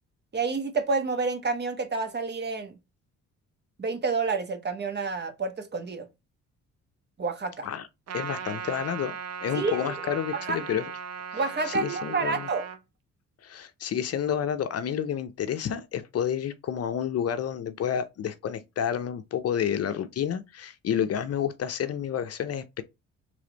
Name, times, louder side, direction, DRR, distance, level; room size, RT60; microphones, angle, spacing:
voice 1, 0.3-2.7 3.8-6.1 7.2-7.7 9.5-9.9 10.3-10.6 11.3-12.7, right 4 dB, 35° right, 1.2 m, -29 dB
voice 2, 8.1-9.1 9.4-10.9 11.3-11.4 11.7-12.5 13.4-22.8, left 8 dB, 55° left, 0.6 m, -30 dB
Trumpet, 8.1-12.8, right 6 dB, 55° right, 0.9 m, -37 dB
3.4 x 3.2 x 3.9 m
cardioid pair, 90°, 30 cm